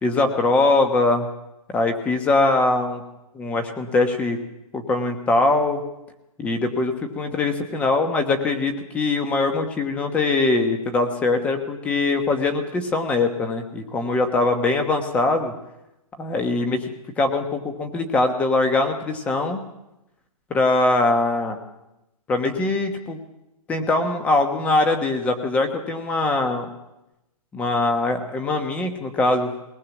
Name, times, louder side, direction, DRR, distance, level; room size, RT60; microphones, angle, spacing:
voice 1, 0.0-1.3 1.7-3.0 3.3-4.4 4.7-5.8 6.4-15.5 16.2-16.9 17.2-19.6 20.5-21.6 22.3-23.2 23.7-26.7 27.5-29.5, left 2 dB, 5° left, 7 dB, 1.1 m, -22 dB
21.5 x 19.0 x 7.2 m, 0.91 s
hypercardioid pair, 175°, 19 cm